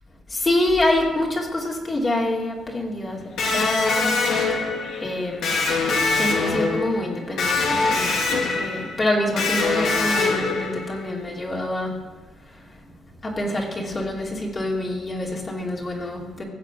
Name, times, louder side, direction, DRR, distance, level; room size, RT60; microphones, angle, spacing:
voice 1, 0.3-3.2 3.5-4.2 5.0-5.5 6.1-11.9 13.2-16.4, left 1 dB, 30° left, -2 dB, 2.6 m, -26 dB
Electric guitar, 3.4-11.1, left 3 dB, 75° left, 2.8 m, -23 dB
16.0 x 7.4 x 6.0 m, 1.2 s
cardioid pair, 90°, 0 cm